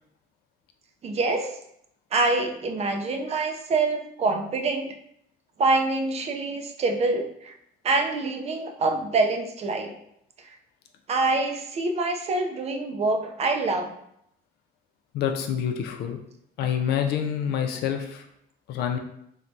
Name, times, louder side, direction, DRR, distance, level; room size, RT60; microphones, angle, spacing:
voice 1, 1.0-1.5 2.1-4.9 5.6-7.5 7.8-9.9 11.1-13.9, right 3 dB, 40° right, 4 dB, 0.4 m, -25 dB
voice 2, 15.1-16.2 16.6-18.2 18.7-19.0, left 8 dB, 75° left, 6 dB, 0.4 m, -27 dB
3.2 x 2.2 x 2.6 m, 0.74 s
cardioid pair, 110°, 17 cm